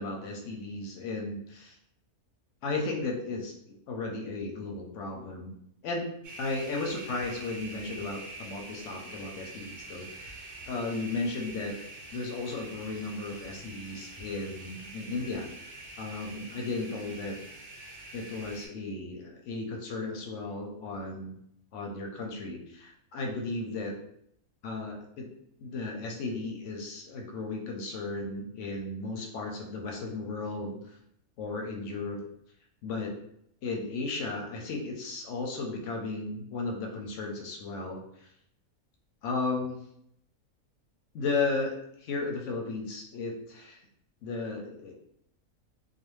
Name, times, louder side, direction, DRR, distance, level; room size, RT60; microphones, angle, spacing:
voice 1, 0.0-1.8 2.6-3.6 3.9-5.6 5.8-6.1 6.4-11.8 12.1-15.7 16.0-17.4 18.1-21.4 21.7-23.9 24.6-25.3 25.6-31.0 31.4-32.2 32.8-33.1 33.6-38.3 39.2-39.8 41.1-43.8 44.2-44.9, left 3 dB, 65° left, 1 dB, 0.8 m, -35 dB
sound 1, 6.2-18.7, right 2 dB, 70° right, 0.4 m, -45 dB
2.4 x 2.2 x 3.0 m, 0.72 s
omnidirectional pair, 1.5 m